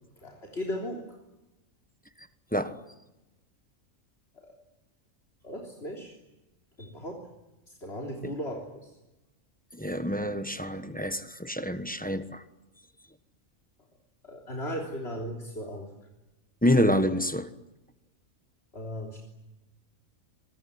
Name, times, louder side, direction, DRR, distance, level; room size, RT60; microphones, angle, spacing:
voice 1, 0.2-1.1 4.4-4.5 5.4-6.1 6.8-7.2 7.7-8.9 14.2-15.9 18.7-19.2, equal, 50° left, 0 dB, 3.9 m, -36 dB
voice 2, 9.7-12.4 16.6-17.5, equal, 5° left, 10 dB, 1.2 m, -27 dB
26.5 x 23.0 x 9.6 m, 1.0 s
omnidirectional pair, 1.4 m